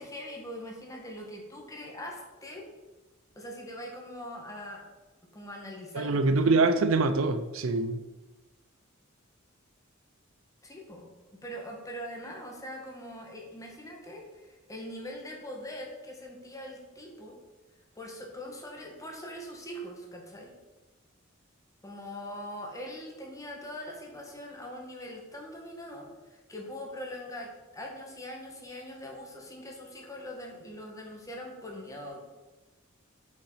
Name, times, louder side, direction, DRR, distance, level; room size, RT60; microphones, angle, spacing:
voice 1, 0.0-2.6 3.3-4.9 5.3-6.5 10.6-17.4 17.9-20.5 21.8-32.3, equal, 15° left, 1.5 m, -42 dB
voice 2, 5.9-8.0, right 3 dB, 70° right, 0.5 m, -24 dB
5.9 x 5.8 x 5.5 m
head